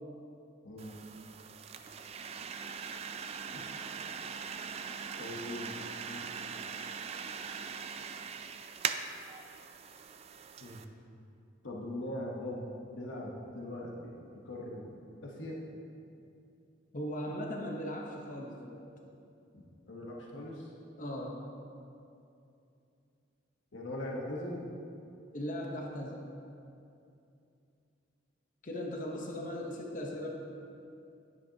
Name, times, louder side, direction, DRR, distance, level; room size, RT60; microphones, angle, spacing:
voice 1, 0.6-1.0 3.5-3.7 5.2-5.8 6.1-6.2 10.6-10.9 11.6-14.8 15.2-15.6 19.5-20.7 23.7-24.6, left 1 dB, 90° left, -2 dB, 1.1 m, -41 dB
sound 1, 0.8-10.8, right 6 dB, 35° right, 0.3 m, -41 dB
voice 2, 16.9-18.8 21.0-21.4 25.3-26.2 28.6-30.3, equal, 45° left, 0 dB, 0.9 m, -38 dB
10.5 x 9.7 x 2.8 m, 2.6 s
head